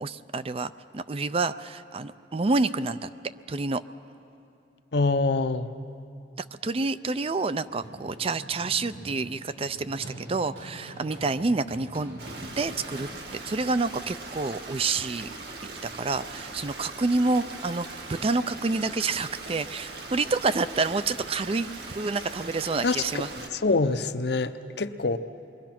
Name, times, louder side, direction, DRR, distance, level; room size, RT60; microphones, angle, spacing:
voice 1, 0.0-3.1 3.5-3.8 6.6-12.2 12.6-13.1 13.5-15.3 15.8-23.3, right 3 dB, 30° right, 14 dB, 0.4 m, -28 dB
voice 2, 4.9-5.7 22.8-23.0 23.5-25.2, left 3 dB, 60° left, 10 dB, 0.8 m, -25 dB
Run, 7.2-13.6, right 1 dB, 85° right, 4.4 m, -45 dB
Stream, 12.2-23.5, right 3 dB, 60° right, 1.9 m, -40 dB
28.0 x 22.5 x 6.0 m, 2.7 s
head